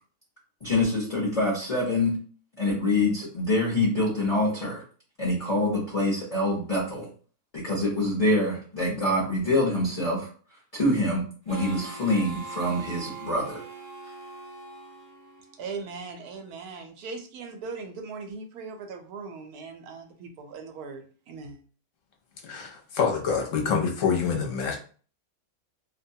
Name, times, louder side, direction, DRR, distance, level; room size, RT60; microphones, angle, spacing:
voice 1, 0.6-2.2 2.6-4.8 5.2-7.1 7.5-10.3 10.7-13.6, left 1 dB, 35° left, -5 dB, 0.6 m, -25 dB
Harmonica, 11.5-15.9, right 3 dB, 60° right, 1.0 m, -42 dB
voice 2, 15.6-21.6, right 4 dB, 80° right, 4 dB, 1.1 m, -39 dB
voice 3, 22.4-24.8, left 6 dB, 65° left, 0 dB, 1.0 m, -26 dB
2.6 x 2.2 x 2.7 m, 0.41 s
omnidirectional pair, 1.6 m